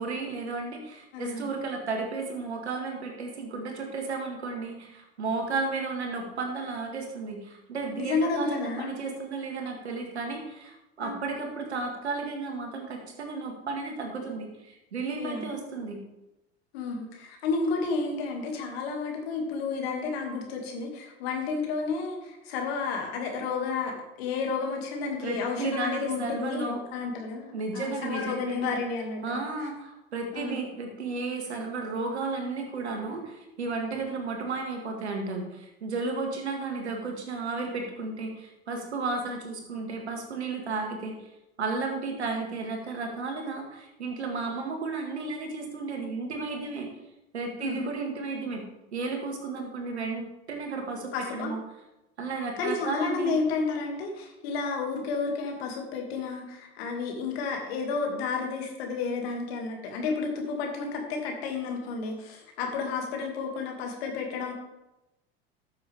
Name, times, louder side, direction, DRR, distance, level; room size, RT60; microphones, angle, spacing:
voice 1, 0.0-16.0 25.2-26.8 27.5-28.8 29.2-41.2 41.6-46.9 47.3-48.6 48.9-51.6 52.2-53.4, right 3 dB, 85° right, 3 dB, 1.9 m, -33 dB
voice 2, 1.1-1.5 8.0-8.9 11.0-11.2 15.2-15.5 16.7-29.7 30.3-30.6 47.6-47.9 51.1-51.5 52.6-64.5, left 4 dB, 70° left, 2 dB, 2.4 m, -31 dB
13.0 x 7.0 x 3.5 m, 0.94 s
hypercardioid pair, 75°, 32 cm